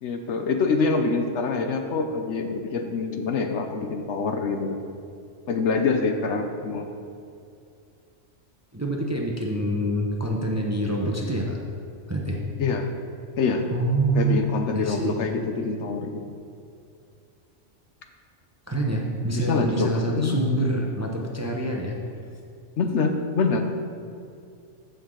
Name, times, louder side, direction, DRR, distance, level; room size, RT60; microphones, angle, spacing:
voice 1, 0.0-4.8 5.5-6.9 12.6-12.9 13.4-13.7 14.1-16.2 19.3-20.4 22.8-23.7, left 4 dB, 70° left, 5 dB, 1.0 m, -25 dB
voice 2, 8.7-11.6 12.1-12.4 13.7-14.4 14.7-15.2 18.7-22.0, right 1 dB, 15° right, -1 dB, 0.7 m, -26 dB
14.5 x 5.3 x 3.8 m, 2.4 s
omnidirectional pair, 1.3 m